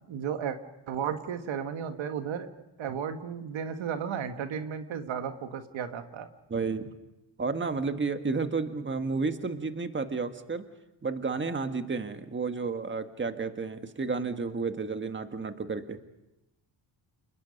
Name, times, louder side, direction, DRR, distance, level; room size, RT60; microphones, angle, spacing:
voice 1, 0.1-0.6 0.9-2.5 2.8-6.3, right 7 dB, 85° right, 7 dB, 1.7 m, -34 dB
voice 2, 6.5-6.9 7.4-10.6 11.0-16.0, right 4 dB, 25° right, 7 dB, 1.6 m, -31 dB
29.0 x 20.5 x 5.3 m, 0.92 s
cardioid pair, 95°, 45 cm